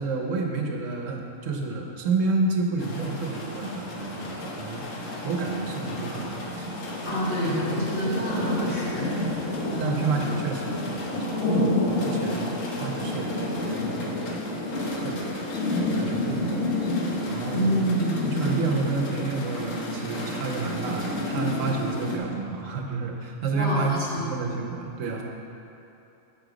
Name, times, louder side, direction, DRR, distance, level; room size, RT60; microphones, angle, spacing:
voice 1, 0.0-6.7 7.4-7.8 9.8-14.5 14.7-16.7 17.3-17.8 18.2-25.2, right 3 dB, 80° right, 1 dB, 1.3 m, -30 dB
sound 1, 2.8-22.2, left 1 dB, 80° left, 1.5 m, -30 dB
voice 2, 7.0-9.1 9.7-9.9 17.5-18.3 23.5-24.4, equal, 55° left, -8 dB, 2.6 m, -27 dB
8.0 x 7.0 x 5.1 m, 2.9 s
omnidirectional pair, 1.3 m